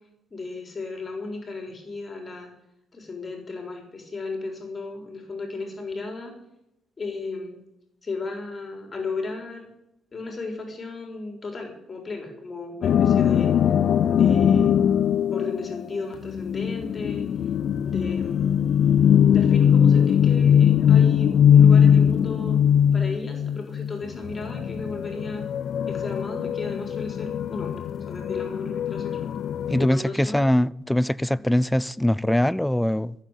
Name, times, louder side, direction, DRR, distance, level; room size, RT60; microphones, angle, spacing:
voice 1, 0.3-2.5 2.9-6.3 7.0-7.6 8.0-9.7 10.1-13.5 14.1-14.7 15.3-17.3 17.8-18.6 19.3-22.6 22.9-25.5 25.9-29.2 29.8-30.4, left 3 dB, 35° left, 3.9 m, -34 dB
sound 1, 12.8-29.9, left 8 dB, 65° left, 0.4 m, -20 dB
voice 2, 29.7-33.1, left 1 dB, 5° left, 0.5 m, -22 dB
14.5 x 7.4 x 8.9 m
cardioid pair, 90°, 0 cm